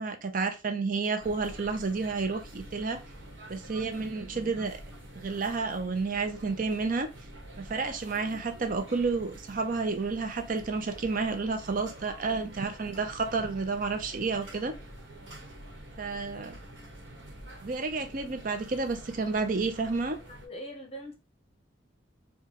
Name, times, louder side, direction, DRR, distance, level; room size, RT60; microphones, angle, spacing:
voice 1, 0.0-3.0 3.5-4.8 5.2-7.1 7.6-14.7 16.0-16.6 17.6-20.2, right 4 dB, 45° right, 0.5 m, -30 dB
sound 1, 1.2-20.5, right 1 dB, 65° right, 1.2 m, -47 dB
voice 2, 20.3-21.1, equal, 30° left, 0.8 m, -42 dB
4.6 x 2.3 x 2.9 m
head